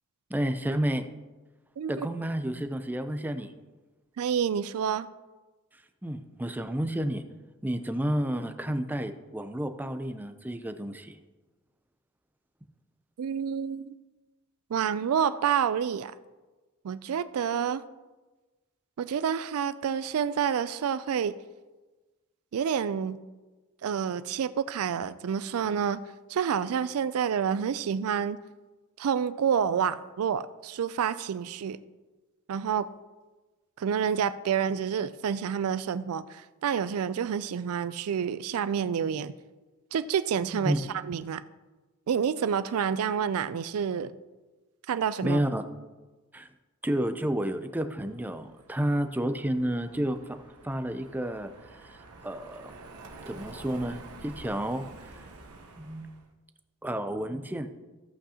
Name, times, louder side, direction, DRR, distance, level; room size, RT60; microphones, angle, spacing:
voice 1, 0.3-1.0 1.9-3.5 6.0-7.2 7.6-11.2 40.6-40.8 45.2-45.6 46.3-46.5 46.8-50.2 50.6-51.5 51.8-52.0 52.2-52.7 53.3-55.2 55.8-56.1 56.8-57.7, right 1 dB, 10° right, 8 dB, 0.5 m, -30 dB
voice 2, 1.8-2.1 4.2-5.1 13.2-13.9 14.7-16.1 16.8-17.8 19.0-21.3 22.5-23.2 23.8-26.0 26.3-28.4 29.0-31.8 32.5-32.9 33.8-39.3 39.9-41.4 42.1-44.1 44.9-45.4, right 7 dB, 70° right, 14 dB, 0.4 m, -28 dB
Car passing by, 47.9-56.3, right 2 dB, 85° right, 1.0 m, -49 dB
14.0 x 8.1 x 2.9 m, 1.2 s
head